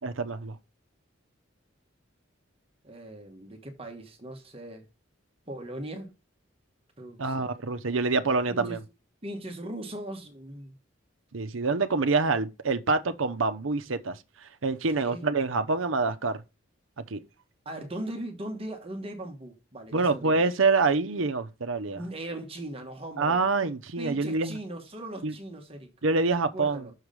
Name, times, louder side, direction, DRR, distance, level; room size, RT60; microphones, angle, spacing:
voice 1, 0.0-0.6 7.2-8.8 11.3-16.4 17.1-17.2 19.9-22.0 23.2-24.6 25.2-25.3 26.0-26.9, right 3 dB, 80° right, 0.8 m, -26 dB
voice 2, 2.8-4.8 5.5-6.1 7.0-7.5 8.5-8.8 9.2-10.7 15.0-15.2 17.6-20.5 21.9-23.4 24.0-25.9 26.5-26.9, right 1 dB, 30° right, 1.3 m, -39 dB
6.5 x 4.8 x 5.1 m
head